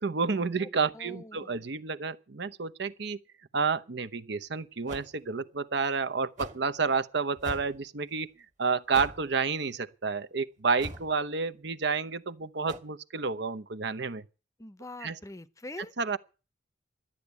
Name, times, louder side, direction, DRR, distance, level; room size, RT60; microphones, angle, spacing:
voice 1, 0.0-3.2 3.5-8.3 8.6-14.2 15.0-15.2 16.0-16.2, right 4 dB, 65° right, 0.8 m, -30 dB
voice 2, 0.6-1.6 14.6-15.9, left 2 dB, 15° left, 0.7 m, -44 dB
sound 1, 4.9-5.1 6.4-6.7 7.4-7.8 8.9-9.3 10.8-11.1 12.7-12.8, right 1 dB, 40° right, 1.9 m, -41 dB
12.5 x 10.0 x 8.2 m
head